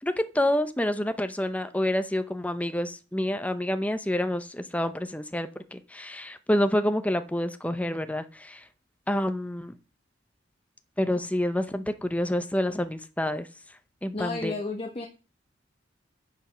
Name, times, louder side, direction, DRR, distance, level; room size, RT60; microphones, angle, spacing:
voice 1, 0.0-8.6 9.1-9.7 11.0-13.5 14.0-14.5, left 1 dB, 10° left, 10 dB, 0.7 m, -28 dB
voice 2, 14.1-15.1, left 3 dB, 30° left, 1 dB, 1.5 m, -32 dB
10.5 x 5.5 x 6.2 m, 0.32 s
head